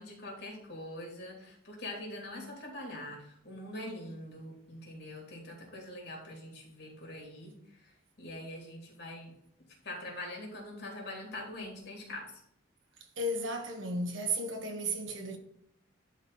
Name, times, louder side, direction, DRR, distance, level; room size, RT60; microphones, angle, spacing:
voice 1, 0.0-7.9 8.2-9.3 9.8-12.3, left 1 dB, 55° left, 3.3 m, -43 dB
voice 2, 13.2-15.4, right 1 dB, 75° right, 1.5 m, -34 dB
11.0 x 4.1 x 4.1 m
head